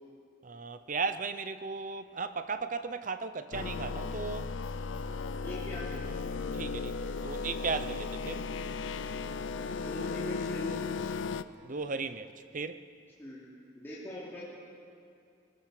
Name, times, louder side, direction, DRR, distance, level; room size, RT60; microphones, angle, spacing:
voice 1, 0.4-4.5 6.5-8.5 11.6-12.9, right 4 dB, 45° right, 0.8 m, -36 dB
sound 1, 3.5-11.4, left 4 dB, 85° left, 0.6 m, -36 dB
voice 2, 5.4-6.3 9.1-10.8 13.2-14.4, equal, 10° left, 3.1 m, -43 dB
21.0 x 20.0 x 6.6 m
head